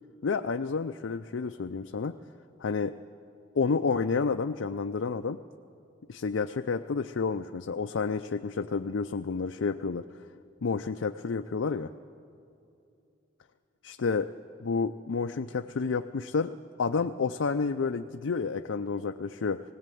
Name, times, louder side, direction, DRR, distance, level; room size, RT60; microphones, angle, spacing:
voice 1, 0.2-2.2 2.6-2.9 3.6-5.4 6.1-10.0 10.6-11.9 13.8-14.3 14.6-16.5 16.8-19.6, left 4 dB, 80° left, 7 dB, 0.5 m, -30 dB
18.0 x 17.0 x 9.2 m, 2.6 s
head